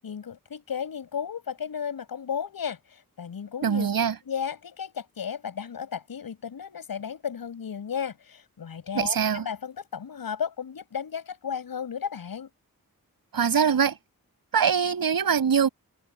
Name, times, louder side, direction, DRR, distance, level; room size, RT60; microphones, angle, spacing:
voice 1, 0.0-3.9 4.2-12.5, left 7 dB, 85° left, 7.9 m, -34 dB
voice 2, 3.6-4.1 8.9-9.4 13.3-13.9 14.5-15.7, right 7 dB, 90° right, 6.4 m, -23 dB
wide cardioid pair, 80°, 34 cm